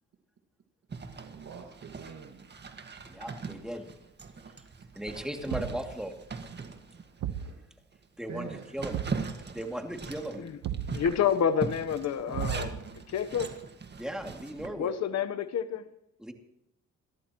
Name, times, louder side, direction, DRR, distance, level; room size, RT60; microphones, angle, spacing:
Zipper (clothing), 0.9-7.5 7.9-8.0 8.4-14.7, right 4 dB, 35° right, 1.9 m, -41 dB
voice 1, 1.2-2.5 7.4-7.6 8.3-8.7, right 6 dB, 60° right, 2.1 m, -44 dB
voice 2, 3.1-3.9 5.0-6.1 8.2-9.0 9.5-10.4 14.0-14.9 16.2-16.3, equal, ahead, 2.6 m, -37 dB
Thump thud, 5.5-5.9 7.2-7.5 8.9-9.3 10.6-11.0 12.3-12.9, right 10 dB, 75° right, 1.2 m, -34 dB
voice 3, 10.9-12.8 13.1-13.5 14.7-15.8, left 8 dB, 60° left, 1.1 m, -29 dB
29.0 x 14.0 x 3.1 m
cardioid pair, 90°, 30 cm